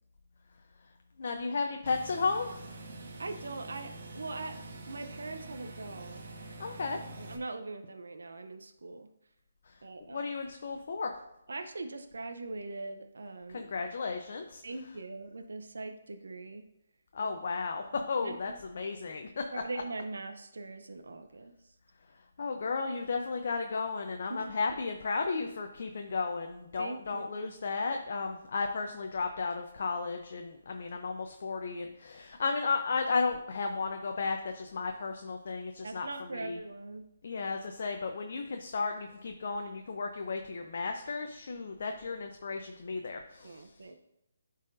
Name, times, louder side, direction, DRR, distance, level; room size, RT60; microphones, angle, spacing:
voice 1, 1.2-2.7 6.6-7.0 10.1-11.1 13.5-14.6 17.1-19.6 22.4-36.6 37.2-43.6, left 4 dB, 60° left, 4 dB, 0.6 m, -34 dB
sound 1, 1.9-7.4, right 2 dB, 60° right, 1.1 m, -46 dB
voice 2, 3.2-6.3 7.2-9.1 9.8-10.3 11.5-13.7 14.6-16.6 17.9-18.6 19.5-21.5 24.3-24.5 26.8-27.5 35.8-37.1 43.4-43.9, right 3 dB, 80° right, 6 dB, 0.6 m, -41 dB
11.0 x 4.1 x 2.6 m, 0.85 s
hypercardioid pair, 150°, 0 cm